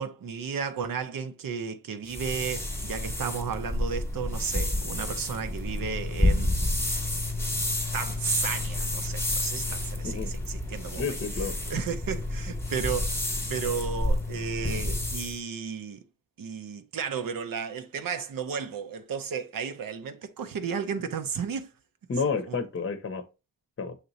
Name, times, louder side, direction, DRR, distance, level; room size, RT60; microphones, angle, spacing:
voice 1, 0.0-6.5 7.9-13.2 13.5-16.0 16.4-21.7 22.5-22.6, right 6 dB, 80° right, 0.7 m, -33 dB
sound 1, 2.1-15.4, left 1 dB, 5° left, 1.1 m, -30 dB
voice 2, 11.0-11.5 22.1-23.2 23.8-24.0, left 5 dB, 35° left, 0.7 m, -30 dB
6.5 x 2.9 x 2.7 m
wide cardioid pair, 80°, 34 cm